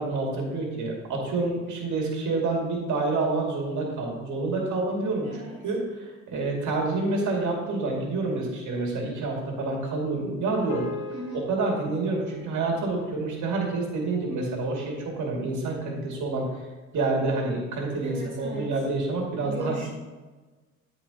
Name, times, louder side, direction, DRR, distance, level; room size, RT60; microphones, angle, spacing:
voice 1, 0.0-10.8 11.5-16.6 16.9-19.7, right 3 dB, 45° right, -1 dB, 2.4 m, -28 dB
voice 2, 5.2-5.6 11.1-11.5 18.0-18.7 19.4-19.9, equal, 80° right, -3 dB, 1.7 m, -37 dB
sound 1, 10.7-15.2, left 3 dB, 60° left, 1.8 m, -42 dB
13.0 x 4.5 x 2.9 m, 1.3 s
figure-of-eight pair, 55°, 41 cm